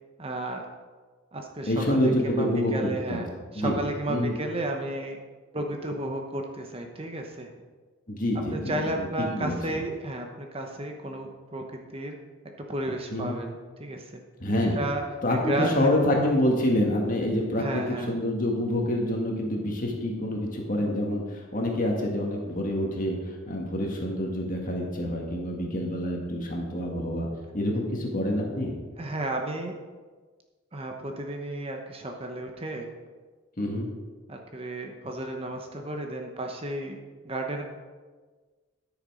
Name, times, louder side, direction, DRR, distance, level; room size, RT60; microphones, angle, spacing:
voice 1, 0.2-0.7 1.3-3.3 3.5-5.2 5.5-7.5 8.5-12.2 12.7-14.2 14.8-15.0 15.3-15.9 17.6-18.1 29.0-29.8 30.7-32.9 34.3-37.0 37.2-37.6, right 1 dB, 25° right, 3 dB, 0.9 m, -33 dB
voice 2, 1.7-3.2 3.5-3.8 4.1-4.3 8.1-9.1 9.3-9.6 13.1-13.4 14.4-14.8 15.2-27.3 27.5-28.8 33.6-33.9, left 1 dB, 40° left, 0 dB, 2.0 m, -27 dB
13.0 x 7.0 x 5.0 m, 1.4 s
head